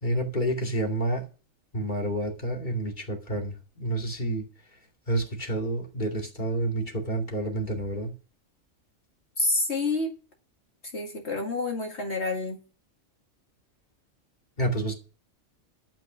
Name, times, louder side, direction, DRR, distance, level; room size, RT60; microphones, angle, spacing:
voice 1, 0.0-1.3 1.7-4.4 5.1-8.1 14.6-14.9, right 1 dB, 35° left, 2.7 m, -29 dB
voice 2, 9.4-10.1 10.9-12.6, left 3 dB, 55° left, 2.4 m, -28 dB
12.0 x 5.8 x 7.3 m
omnidirectional pair, 1.3 m